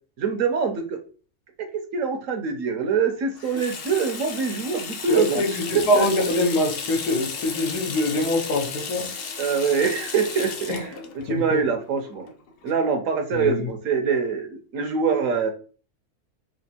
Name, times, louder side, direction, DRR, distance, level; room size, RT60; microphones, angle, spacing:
voice 1, 0.2-1.0 1.6-6.2 9.4-12.3 12.6-15.5, right 6 dB, 65° right, 0.9 m, -24 dB
Water tap faucet / Sink (filling or washing), 3.4-12.7, left 5 dB, 65° left, 0.5 m, -34 dB
voice 2, 5.1-5.5 5.9-9.1 10.7-10.8 11.3-11.6 13.3-13.7, left 1 dB, 85° left, 1.5 m, -23 dB
4.2 x 2.4 x 2.8 m
omnidirectional pair, 1.6 m